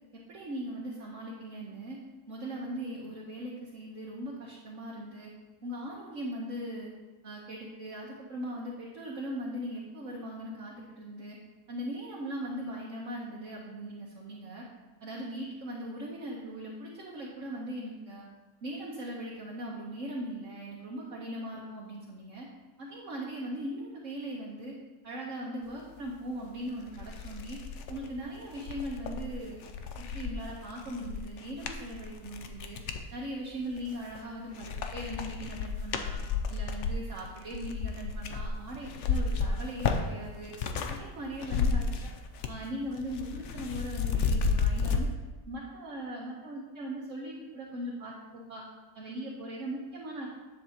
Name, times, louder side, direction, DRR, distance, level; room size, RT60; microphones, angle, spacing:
voice 1, 0.1-2.0 2.3-5.3 5.6-6.9 7.2-11.4 11.7-14.7 15.0-18.2 18.6-22.5 22.8-24.8 25.0-27.6 27.9-29.6 30.0-32.8 33.1-36.2 36.5-40.5 40.9-42.1 42.5-45.1 45.5-48.6 48.9-50.3, right 1 dB, 55° right, -5 dB, 1.5 m, -39 dB
sound 1, 26.4-26.5 26.9-33.1 33.6-34.2 34.5-41.0 41.3-42.7 42.9-45.0, left 5 dB, 60° left, 0.9 m, -32 dB
10.5 x 7.6 x 2.9 m, 1.2 s
omnidirectional pair, 1.6 m